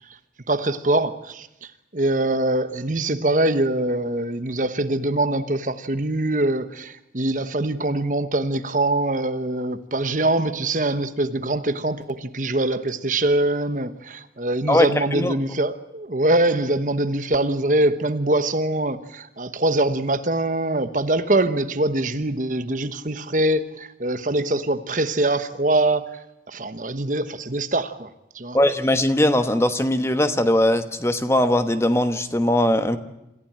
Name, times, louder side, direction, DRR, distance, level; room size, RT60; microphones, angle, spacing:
voice 1, 0.5-1.5 1.9-26.2 26.5-28.6, right 2 dB, 45° right, 1.1 m, -23 dB
voice 2, 14.7-15.3 28.5-33.0, left 1 dB, 15° left, 1.2 m, -20 dB
27.0 x 15.0 x 8.8 m
head